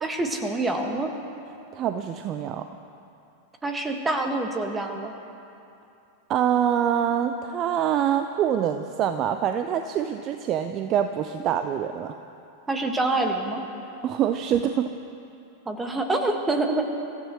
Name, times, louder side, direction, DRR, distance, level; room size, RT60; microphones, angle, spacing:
voice 1, 0.0-1.1 3.6-5.1 12.7-13.6 15.7-16.9, right 2 dB, 15° right, 4 dB, 1.8 m, -26 dB
voice 2, 1.7-2.7 6.3-12.2 14.0-15.0, right 9 dB, 35° right, 8 dB, 0.6 m, -25 dB
28.0 x 15.0 x 3.2 m, 2.7 s
figure-of-eight pair, 90°, 0 cm